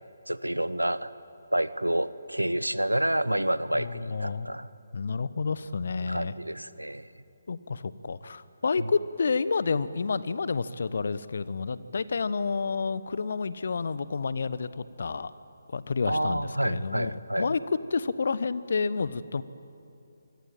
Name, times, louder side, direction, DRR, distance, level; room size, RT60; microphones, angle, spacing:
voice 1, 0.3-1.1 1.5-4.7 6.0-7.1 8.8-8.9 16.1-17.5, right 1 dB, 85° right, 16 dB, 1.0 m, -29 dB
voice 2, 3.7-4.5 4.9-6.3 7.5-15.3 15.7-17.6 17.9-19.4, left 4 dB, 50° left, 16 dB, 1.0 m, -30 dB
26.5 x 24.5 x 9.0 m, 2.7 s
figure-of-eight pair, 145°, 0 cm